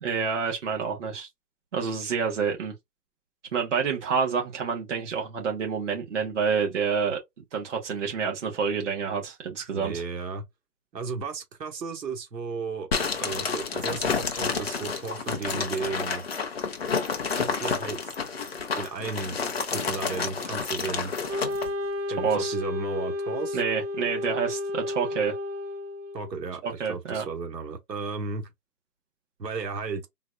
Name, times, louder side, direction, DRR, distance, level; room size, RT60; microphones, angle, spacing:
voice 1, 0.0-1.3 1.7-2.7 3.5-7.2 7.5-10.0 22.2-22.5 23.5-25.4 26.6-27.2, right 6 dB, 45° right, 1.3 m, -28 dB
voice 2, 9.7-10.4 10.9-12.9 13.2-16.2 17.4-18.1 18.8-19.4 19.7-21.3 22.1-23.6 26.1-28.5 29.4-30.1, right 4 dB, 80° right, 1.5 m, -34 dB
sound 1, 12.9-21.7, left 5 dB, 40° left, 0.6 m, -30 dB
Wind instrument woodwind instrument, 21.3-26.4, left 2 dB, 25° right, 1.3 m, -32 dB
4.0 x 2.4 x 2.4 m
hypercardioid pair, 165°, 50 cm